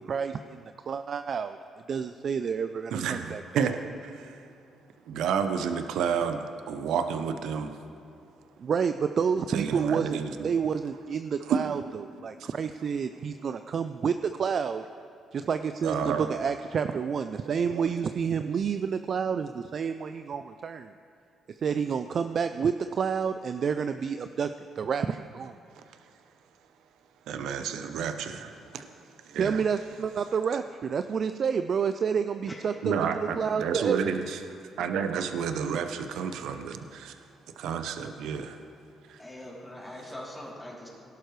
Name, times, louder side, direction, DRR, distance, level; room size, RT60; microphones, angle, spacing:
voice 1, 0.1-1.6 1.9-3.6 8.6-14.8 15.3-20.9 21.5-24.5 24.8-25.6 29.3-34.0, right 6 dB, 50° right, 9 dB, 0.3 m, -29 dB
voice 2, 2.9-4.4 5.1-7.8 9.5-10.5 11.5-11.8 12.4-12.5 15.8-16.3 17.4-17.8 27.3-28.9 29.2-29.6 32.8-34.4 34.8-37.1 37.6-38.6 39.1-39.2, right 7 dB, 85° right, 8 dB, 0.7 m, -30 dB
voice 3, 32.5-33.1 39.2-40.9, left 1 dB, 10° left, -5 dB, 3.1 m, -42 dB
17.5 x 11.5 x 3.2 m, 2.6 s
cardioid pair, 90°, 0 cm